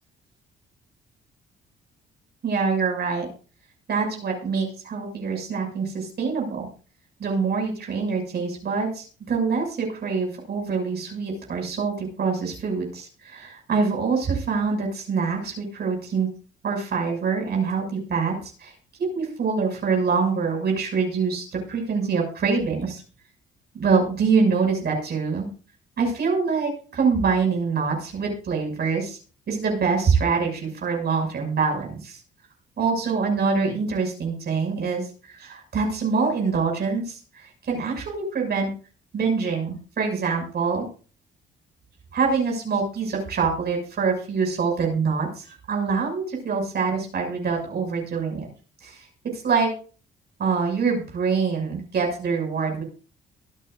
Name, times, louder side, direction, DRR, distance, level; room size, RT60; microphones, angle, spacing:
voice 1, 2.4-3.3 3.9-6.7 7.2-16.3 16.6-18.7 19.0-23.0 23.7-25.5 26.0-29.2 29.5-32.2 32.8-38.7 39.1-40.9 42.1-48.5 48.8-49.1 49.3-49.7 50.4-52.8, right 5 dB, 55° right, 1 dB, 6.5 m, -25 dB
23.5 x 9.0 x 2.6 m, 0.37 s
cardioid pair, 90°, 20 cm